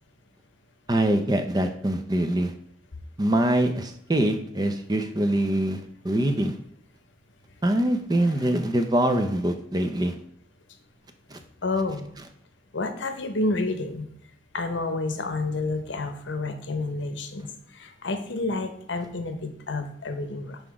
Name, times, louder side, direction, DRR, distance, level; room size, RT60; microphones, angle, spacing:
voice 1, 0.9-2.5 3.2-5.8 6.0-6.5 7.6-10.1 11.3-11.4, right 1 dB, 20° right, 7 dB, 0.5 m, -24 dB
voice 2, 11.6-12.1 12.7-14.1 14.5-20.6, left 2 dB, 75° left, 8 dB, 0.8 m, -29 dB
5.9 x 5.0 x 4.7 m, 0.68 s
head